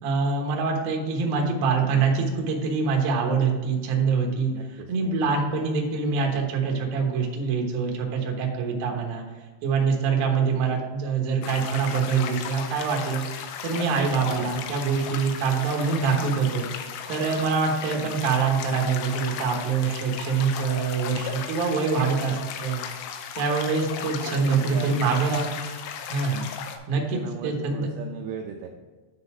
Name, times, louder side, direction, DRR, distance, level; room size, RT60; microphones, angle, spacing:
voice 1, 0.0-9.2 9.6-13.2 13.6-16.7 17.1-22.8 23.3-25.5 26.1-26.5 26.9-27.9, right 5 dB, 70° right, 0 dB, 2.4 m, -25 dB
voice 2, 4.5-5.1 13.7-14.5 17.9-18.1 24.0-25.0 27.1-28.7, right 7 dB, 85° right, 3 dB, 2.5 m, -38 dB
sound 1, 11.4-26.8, left 7 dB, 80° left, 3.0 m, -36 dB
9.9 x 4.0 x 4.9 m, 1.4 s
omnidirectional pair, 5.6 m